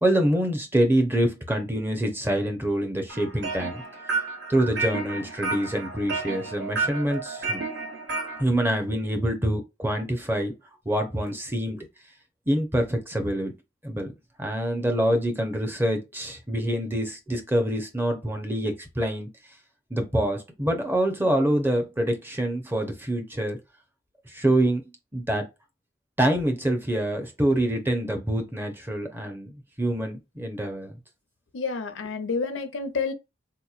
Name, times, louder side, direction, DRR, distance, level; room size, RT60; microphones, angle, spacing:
voice 1, 0.0-3.8 4.5-7.6 8.4-10.5 10.9-11.9 12.5-13.5 13.8-14.1 14.4-19.3 19.9-23.6 24.3-24.8 25.1-25.5 26.2-29.5 29.8-31.0, right 1 dB, 10° right, 0.6 m, -25 dB
sound 1, 3.1-8.4, right 3 dB, 60° right, 1.1 m, -31 dB
voice 2, 31.5-33.1, left 4 dB, 75° left, 0.6 m, -29 dB
4.2 x 2.9 x 2.4 m
head